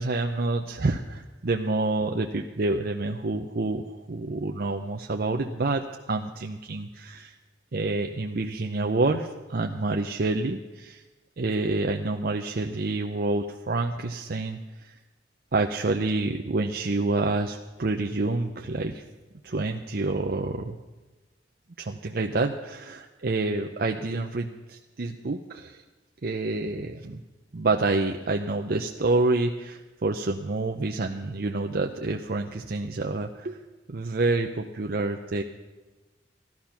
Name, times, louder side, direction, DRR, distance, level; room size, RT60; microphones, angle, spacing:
voice 1, 0.0-7.3 7.7-11.0 11.4-14.9 15.5-19.0 19.4-20.8 21.8-25.8 26.2-27.2 27.5-33.6 33.9-35.4, right 3 dB, 55° right, 3 dB, 0.6 m, -28 dB
14.5 x 12.0 x 5.8 m, 1.2 s
head